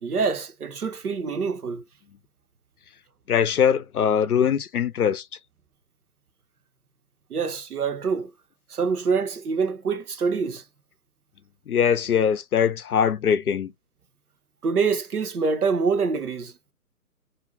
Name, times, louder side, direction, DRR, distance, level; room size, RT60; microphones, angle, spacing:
voice 1, 0.0-1.8 7.3-8.3 8.7-10.6 14.6-16.5, right 5 dB, 65° right, 0.8 m, -25 dB
voice 2, 3.3-5.2 11.7-13.7, left 8 dB, 65° left, 0.5 m, -22 dB
2.7 x 2.1 x 2.6 m
figure-of-eight pair, 135°, 48 cm